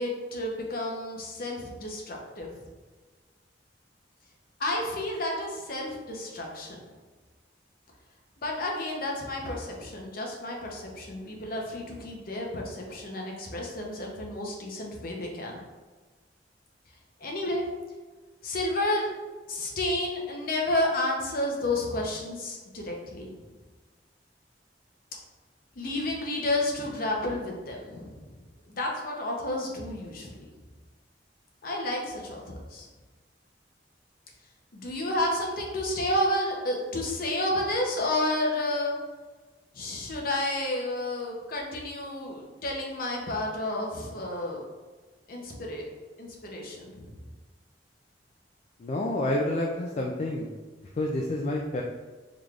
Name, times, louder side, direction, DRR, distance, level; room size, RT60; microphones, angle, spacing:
voice 1, 0.0-2.5 4.6-6.8 8.4-15.6 17.2-17.6 18.4-19.1 19.5-23.3 25.8-28.3 28.8-30.5 31.6-32.9 34.7-39.0 39.7-44.6 45.3-45.9 46.2-47.1, left 1 dB, 55° left, 0 dB, 0.8 m, -31 dB
voice 2, 48.8-50.5 50.9-51.8, left 1 dB, 40° left, -1 dB, 0.3 m, -28 dB
3.8 x 3.3 x 2.4 m, 1.3 s
head